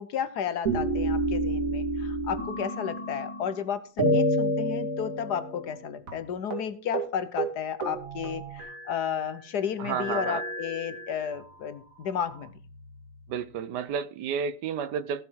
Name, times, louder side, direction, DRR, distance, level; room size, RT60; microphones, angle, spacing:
voice 1, 0.0-12.5, left 8 dB, 70° left, 1.5 m, -33 dB
sound 1, 0.7-3.6 4.0-5.8 6.1-6.2 6.5-6.7 6.9-7.1 7.4-9.1 9.9-11.4 12.2-13.1, right 1 dB, 50° right, 2.8 m, -30 dB
voice 2, 9.8-10.4 13.3-15.2, right 7 dB, 80° right, 1.4 m, -31 dB
16.0 x 7.3 x 4.7 m
omnidirectional pair, 1.8 m